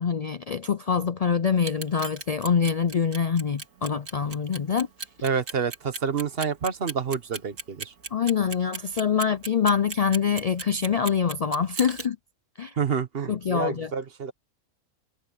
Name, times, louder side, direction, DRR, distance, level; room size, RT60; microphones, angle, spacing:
voice 1, 0.0-4.9 8.1-12.2 12.6-12.8 13.3-13.9, left 6 dB, 90° left, 0.3 m, -25 dB
Clock, 1.6-12.1, right 4 dB, 75° right, 2.5 m, -36 dB
voice 2, 5.2-7.9 12.8-14.3, right 6 dB, 50° right, 1.2 m, -28 dB
omnidirectional pair, 1.4 m